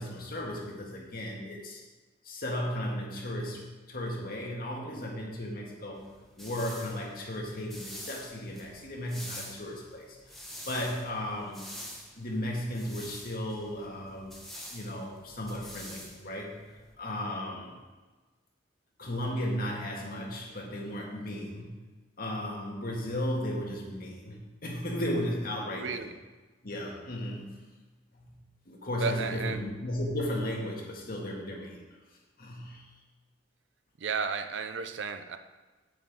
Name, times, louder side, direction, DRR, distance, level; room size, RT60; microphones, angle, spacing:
voice 1, 0.0-1.8 2.2-6.1 6.4-10.2 10.7-11.6 12.2-14.3 14.7-16.6 17.0-17.8 19.0-21.8 22.2-26.0 26.6-27.6 28.1-28.4 28.7-31.8 32.4-32.9, left 1 dB, 50° left, -1 dB, 1.9 m, -35 dB
sound 1, 6.0-16.9, equal, ahead, 1.6 m, -47 dB
voice 2, 25.7-26.2 29.0-29.6 34.0-35.4, right 5 dB, 70° right, 9 dB, 0.6 m, -33 dB
8.7 x 8.6 x 3.7 m, 1.3 s
head